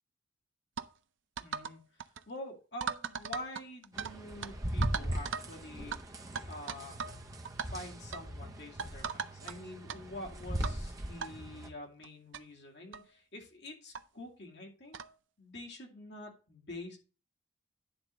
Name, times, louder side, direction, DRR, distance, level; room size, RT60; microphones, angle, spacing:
sound 1, 0.8-0.9 1.4-1.7 2.0-2.2 2.8-4.1 4.4-4.5 4.8-5.5 5.9-6.0 6.4-7.2 7.4-7.7 8.1-8.3 8.8-9.5 9.9-10.0 10.6-10.8 11.2-11.3 12.0-12.1 12.3-12.4 12.9-13.1 13.9-14.0 14.9-15.1, right 6 dB, 75° right, 0.6 m, -38 dB
voice 1, 1.4-6.0 6.5-7.0 7.7-15.0 15.4-17.0, left 1 dB, 60° left, 0 dB, 2.4 m, -46 dB
sound 2, 4.0-11.7, right 1 dB, 20° right, 0.8 m, -39 dB
10.0 x 3.8 x 6.2 m, 0.35 s
head